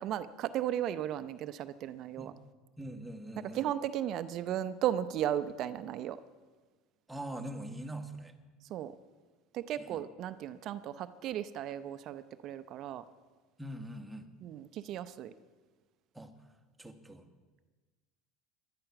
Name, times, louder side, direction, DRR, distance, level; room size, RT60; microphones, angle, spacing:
voice 1, 0.0-2.3 3.4-6.2 8.7-8.9 9.5-13.0 14.4-15.3, right 11 dB, 55° right, 12 dB, 0.6 m, -35 dB
voice 2, 2.8-3.6 7.1-8.3 9.8-10.0 13.6-14.3 16.1-16.3 16.8-17.3, right 1 dB, 10° right, 6 dB, 1.3 m, -43 dB
16.0 x 11.5 x 5.9 m, 1.3 s
supercardioid pair, 105°, 0 cm